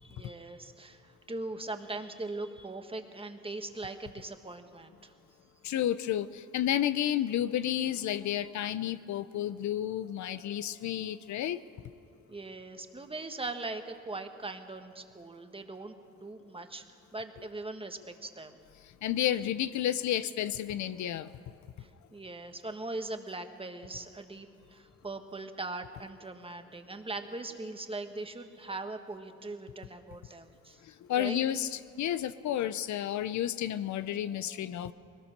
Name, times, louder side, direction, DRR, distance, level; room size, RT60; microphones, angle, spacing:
voice 1, 0.0-5.1 12.3-16.8 17.1-18.6 21.8-30.8 31.2-31.4, right 2 dB, 20° right, 6 dB, 1.5 m, -40 dB
voice 2, 5.6-11.6 19.0-21.3 30.8-34.9, left 11 dB, 70° left, 14 dB, 0.7 m, -31 dB
21.0 x 19.0 x 6.6 m, 2.6 s
cardioid pair, 90°, 30 cm